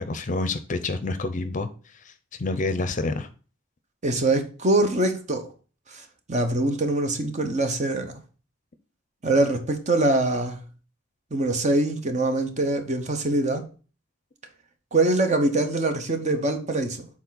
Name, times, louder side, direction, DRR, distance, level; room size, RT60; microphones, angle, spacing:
voice 1, 0.0-1.7 2.0-2.1 2.4-3.3, left 2 dB, 40° left, 0.6 m, -28 dB
voice 2, 4.0-5.5 5.9-6.0 6.3-8.1 9.2-10.6 11.3-13.6 14.9-17.1, right 2 dB, 35° right, 0.9 m, -23 dB
7.0 x 4.3 x 4.0 m
head